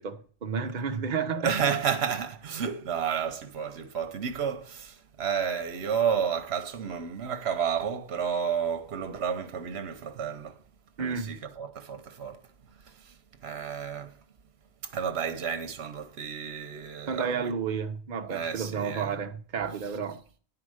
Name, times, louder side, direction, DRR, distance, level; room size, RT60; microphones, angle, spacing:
voice 1, 0.0-1.8 11.0-11.3 17.1-20.2, right 6 dB, 45° right, 0.9 m, -31 dB
voice 2, 1.4-10.6 11.0-12.4 12.7-14.2 14.8-17.5 18.3-19.2 19.8-19.9, right 7 dB, 70° right, 1.1 m, -31 dB
10.0 x 4.9 x 6.3 m
omnidirectional pair, 1.1 m